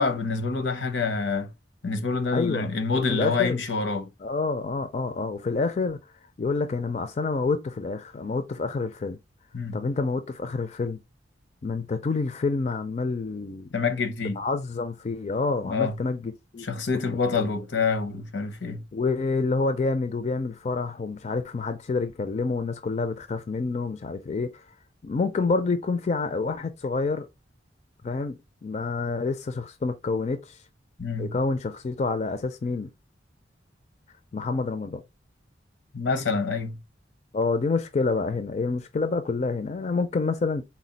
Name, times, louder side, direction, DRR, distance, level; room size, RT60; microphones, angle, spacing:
voice 1, 0.0-1.5 1.8-4.1 9.5-9.8 13.7-14.4 15.6-16.0 16.6-18.8 31.0-31.3 35.9-36.8, left 4 dB, 85° left, 0.8 m, -27 dB
voice 2, 2.3-2.7 3.1-3.6 4.2-6.0 6.4-9.2 9.7-11.0 11.6-13.7 14.4-16.7 17.3-17.5 18.9-24.6 25.0-27.3 28.0-28.4 28.6-30.6 31.2-32.9 34.3-35.0 37.3-40.6, left 3 dB, 40° left, 0.4 m, -28 dB
4.1 x 2.3 x 3.9 m
head